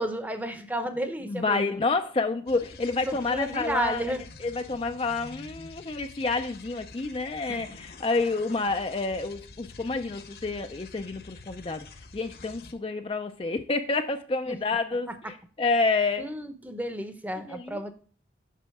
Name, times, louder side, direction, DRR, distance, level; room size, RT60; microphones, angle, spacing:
voice 1, 0.0-1.8 3.1-4.2 7.5-7.6 14.5-14.6 16.2-17.9, right 1 dB, 10° right, 8 dB, 0.7 m, -32 dB
voice 2, 1.3-4.0 4.4-11.9 12.1-16.3 17.5-17.9, left 3 dB, 30° left, 7 dB, 0.4 m, -29 dB
sound 1, 2.5-12.7, left 4 dB, 60° left, 0.8 m, -47 dB
8.3 x 6.1 x 3.5 m, 0.43 s
head